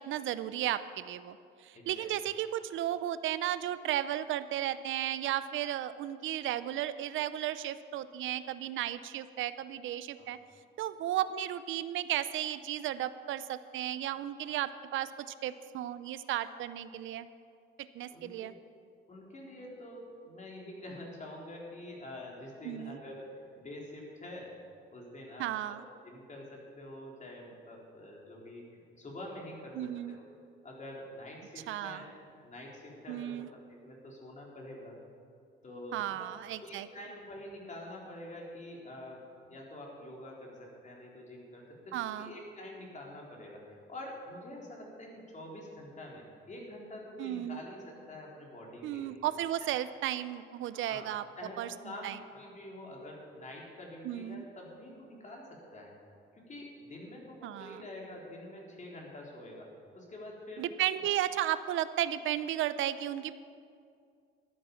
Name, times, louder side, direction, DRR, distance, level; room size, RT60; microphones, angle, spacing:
voice 1, 0.0-10.4 10.8-17.3 17.9-18.5 22.6-23.0 25.4-25.8 29.8-30.2 31.7-32.0 33.1-33.5 35.9-36.9 41.9-42.3 47.2-47.6 48.8-51.2 51.6-51.7 52.0-52.2 54.0-54.4 57.4-57.8 60.6-63.4, right 12 dB, 80° right, 14 dB, 0.6 m, -34 dB
voice 2, 1.7-2.1 10.2-10.3 18.1-18.3 19.1-24.5 24.9-30.2 30.6-32.1 32.4-35.0 35.6-36.3 36.6-49.2 49.6-49.7 50.7-51.1 51.4-55.9 56.3-59.7 59.9-60.7 60.9-61.0, left 1 dB, 40° left, -2 dB, 4.0 m, -46 dB
13.0 x 10.0 x 7.1 m, 2.3 s
cardioid pair, 90°, 20 cm